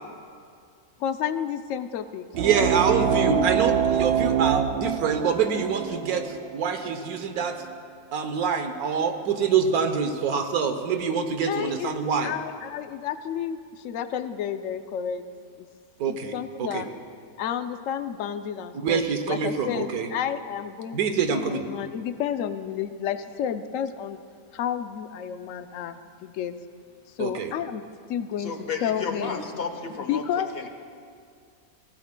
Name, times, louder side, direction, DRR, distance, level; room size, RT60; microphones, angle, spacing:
voice 1, 1.0-2.3 11.5-11.9 12.2-15.2 15.6-15.7 16.0-16.9 17.4-21.0 21.3-24.2 24.5-26.6 27.1-28.5 28.8-29.4 30.1-30.7, left 9 dB, 65° left, 10 dB, 0.9 m, -31 dB
sound 1, 2.3-7.4, right 7 dB, 65° right, 0.6 m, -25 dB
voice 2, 2.4-6.2 6.5-7.6 8.1-12.3 16.0-16.3 16.6-16.8 18.8-20.1 20.9-21.6 27.2-27.5, right 6 dB, 80° right, 7 dB, 1.4 m, -25 dB
voice 3, 28.4-30.2 30.5-30.7, left 5 dB, 45° left, 5 dB, 1.2 m, -32 dB
23.5 x 15.5 x 2.2 m, 2.2 s
omnidirectional pair, 1.6 m